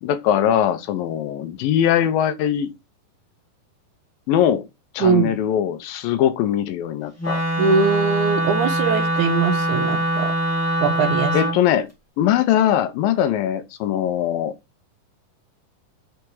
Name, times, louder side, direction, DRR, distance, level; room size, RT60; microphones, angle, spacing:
voice 1, 0.0-2.7 4.3-4.7 4.9-7.4 11.3-11.9 12.2-14.5, left 10 dB, 85° left, 2.5 m, -21 dB
voice 2, 5.0-5.3 7.6-10.3 10.8-11.4, right 5 dB, 70° right, 2.1 m, -21 dB
Wind instrument woodwind instrument, 7.2-11.6, right 1 dB, 5° left, 1.3 m, -23 dB
6.4 x 4.7 x 4.6 m
omnidirectional pair, 4.1 m